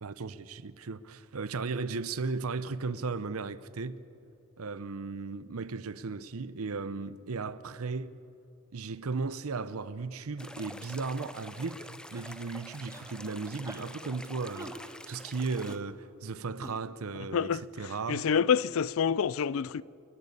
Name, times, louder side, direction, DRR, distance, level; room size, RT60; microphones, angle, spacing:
voice 1, 0.0-4.0 4.6-8.1 8.7-18.3, right 4 dB, 80° right, 0.7 m, -36 dB
sound 1, 10.4-15.8, left 1 dB, 5° left, 0.4 m, -47 dB
sound 2, 12.1-12.4 12.9-13.2 13.6-13.9 14.5-14.8 15.6-15.8 16.6-16.8, right 1 dB, 15° right, 1.5 m, -45 dB
voice 2, 18.1-19.8, left 7 dB, 70° left, 0.4 m, -27 dB
29.0 x 10.5 x 8.5 m
head